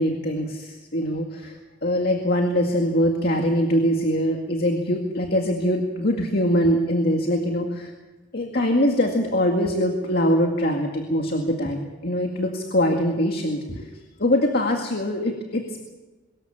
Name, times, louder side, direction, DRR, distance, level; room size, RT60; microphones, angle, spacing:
voice 1, 0.0-7.9 8.3-13.9 14.2-15.8, equal, 55° left, 2 dB, 2.1 m, -23 dB
23.5 x 14.0 x 8.7 m, 1.2 s
head